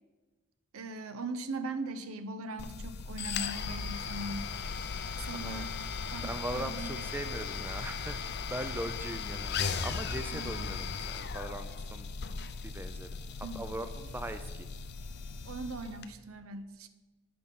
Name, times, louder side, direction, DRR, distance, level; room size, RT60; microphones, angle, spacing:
voice 1, 0.7-4.5 5.2-5.8 6.1-7.0 10.3-10.8 13.4-13.7 15.4-16.9, right 2 dB, 80° right, 11 dB, 0.6 m, -40 dB
sound 1, 2.6-16.1, left 5 dB, 50° left, 0.5 m, -37 dB
voice 2, 5.3-5.7 6.2-12.1 12.6-13.1 13.5-14.7, right 1 dB, 10° right, 9 dB, 0.3 m, -40 dB
8.6 x 5.4 x 5.2 m, 1.3 s
head